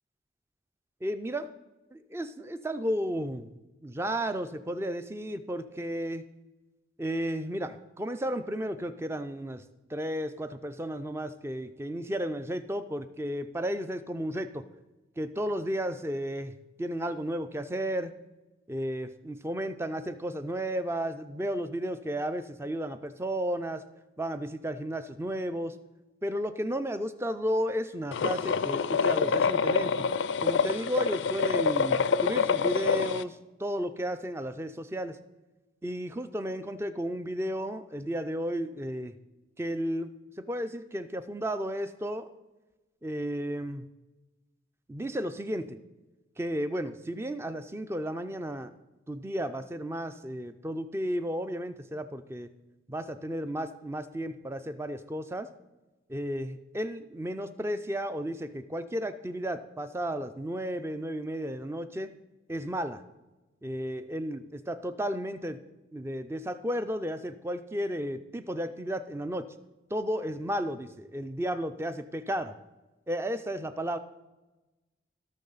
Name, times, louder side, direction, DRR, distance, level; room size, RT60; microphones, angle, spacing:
voice 1, 1.0-1.5 1.9-6.2 7.0-9.6 9.9-14.6 15.2-18.1 18.7-23.8 24.2-25.7 26.2-29.9 30.4-35.2 35.8-39.2 39.6-40.1 40.4-42.3 43.0-43.9 44.9-45.8 46.4-48.7 49.1-52.5 52.9-55.5 56.1-62.1 62.5-63.0 63.6-65.6 65.9-69.5 69.9-72.6 73.1-74.0, equal, 15° right, 11 dB, 0.4 m, -33 dB
sound 1, 28.1-33.2, left 5 dB, 75° left, 0.4 m, -26 dB
17.5 x 6.3 x 4.0 m, 1.1 s
head